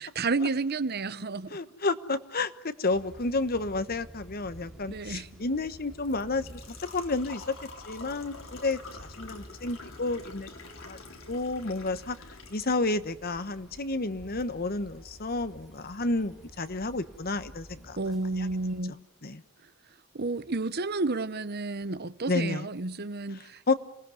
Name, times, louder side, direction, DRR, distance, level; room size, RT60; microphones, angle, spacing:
voice 1, 0.0-1.6 4.9-5.4 18.0-19.0 20.1-23.6, right 3 dB, 50° right, 1.0 m, -31 dB
voice 2, 1.5-7.4 7.9-10.5 10.9-11.0 11.3-12.2 12.5-18.0 18.4-18.5 19.2-19.4 22.3-22.7 23.7-23.8, left 3 dB, 50° left, 1.2 m, -31 dB
sound 1, 2.9-18.8, equal, ahead, 6.0 m, -50 dB
Engine / Trickle dribble / Fill (with liquid), 5.3-17.3, left 3 dB, 75° left, 4.0 m, -50 dB
27.0 x 19.5 x 9.7 m
head